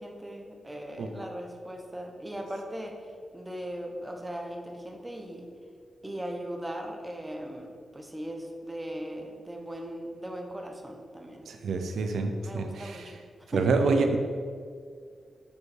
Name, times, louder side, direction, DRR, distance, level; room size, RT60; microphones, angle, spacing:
voice 1, 0.0-3.0 3.3-5.5 6.0-11.5 12.4-13.1 13.5-13.6 14.0-14.1, equal, 10° right, 2 dB, 0.6 m, -38 dB
voice 2, 11.5-13.1 13.5-14.2, right 3 dB, 90° right, 6 dB, 0.5 m, -27 dB
6.9 x 4.5 x 3.3 m, 2.1 s
wide cardioid pair, 155°, 0 cm